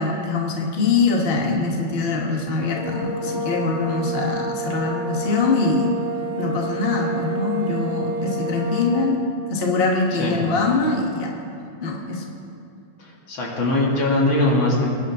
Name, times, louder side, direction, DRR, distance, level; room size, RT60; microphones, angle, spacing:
voice 1, 0.0-6.0 6.4-9.2 9.5-11.3 11.8-12.2, left 3 dB, 35° left, -1 dB, 1.3 m, -23 dB
sound 1, 2.6-9.3, right 2 dB, ahead, 3.1 m, -29 dB
voice 2, 13.0-14.9, left 2 dB, 65° left, -3 dB, 2.9 m, -21 dB
21.5 x 10.5 x 3.6 m, 2.6 s
omnidirectional pair, 2.3 m